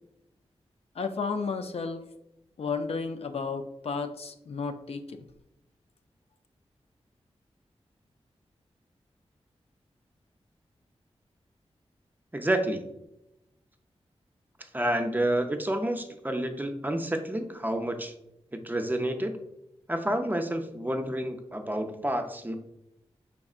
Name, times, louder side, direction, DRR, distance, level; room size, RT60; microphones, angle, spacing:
voice 1, 1.0-2.0 2.6-5.2, left 4 dB, 65° left, 7 dB, 0.4 m, -32 dB
voice 2, 12.3-12.9 14.7-18.1 18.5-19.3 19.9-22.6, right 1 dB, 15° right, 5 dB, 0.5 m, -29 dB
4.8 x 3.5 x 2.4 m, 0.86 s
cardioid pair, 60°, 11 cm